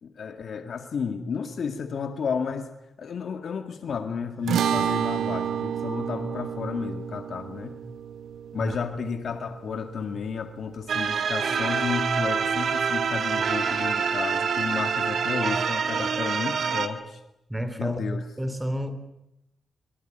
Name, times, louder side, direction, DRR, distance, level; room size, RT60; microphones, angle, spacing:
voice 1, 0.0-2.7 3.0-7.8 8.5-17.2 17.8-18.2, left 5 dB, 65° left, 2.0 m, -32 dB
sound 1, 4.5-11.0, right 8 dB, 90° right, 1.4 m, -30 dB
sound 2, 10.9-16.9, right 6 dB, 65° right, 2.3 m, -26 dB
voice 2, 15.3-15.7 16.0-16.1 17.5-18.0 18.4-18.9, equal, 5° right, 3.3 m, -31 dB
24.5 x 23.5 x 9.2 m
wide cardioid pair, 115°, 0 cm